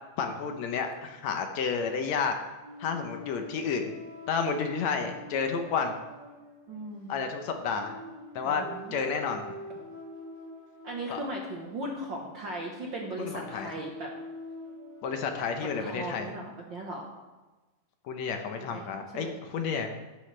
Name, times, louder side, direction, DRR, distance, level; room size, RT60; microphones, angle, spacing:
voice 1, 0.2-2.4 2.8-3.9 4.3-6.0 7.1-8.0 8.4-8.6 8.9-9.4 11.1-11.2 13.2-13.7 15.0-16.3 18.1-19.9, left 5 dB, 70° left, 5 dB, 2.0 m, -31 dB
sound 1, 2.6-15.6, left 1 dB, 5° right, 3.0 m, -45 dB
voice 2, 6.7-7.1 8.4-8.9 10.8-14.1 15.8-17.1 18.7-18.8 19.1-19.3, right 1 dB, 55° right, -1 dB, 1.4 m, -37 dB
18.0 x 9.4 x 3.3 m, 1.2 s
omnidirectional pair, 3.5 m